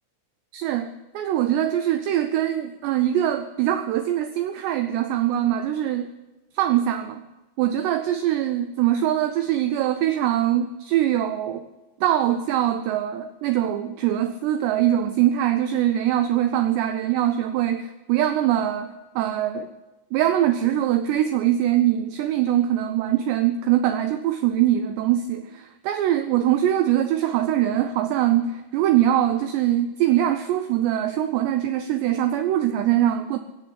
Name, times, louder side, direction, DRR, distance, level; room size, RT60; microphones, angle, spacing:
voice 1, 0.5-6.1 6.5-7.2 7.6-11.7 12.0-19.7 20.1-33.4, right 11 dB, 85° right, 9 dB, 2.5 m, -22 dB
17.0 x 7.3 x 10.0 m, 1.1 s
omnidirectional pair, 5.7 m